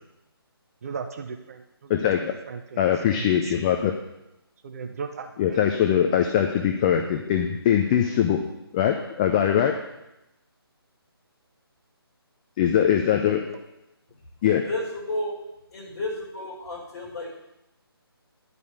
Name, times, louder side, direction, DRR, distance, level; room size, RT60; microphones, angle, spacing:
voice 1, 0.8-2.0 2.5-2.8 3.1-3.7 4.6-5.6, right 5 dB, 35° right, 5 dB, 0.9 m, -37 dB
voice 2, 1.9-2.3 2.8-3.9 5.4-8.4 8.7-9.7 12.6-13.6 14.4-14.6, left 9 dB, 20° left, 4 dB, 0.5 m, -22 dB
voice 3, 14.4-15.4 15.7-17.3, left 1 dB, 40° left, -4 dB, 4.4 m, -32 dB
11.0 x 5.4 x 8.1 m, 0.88 s
figure-of-eight pair, 150°, 13 cm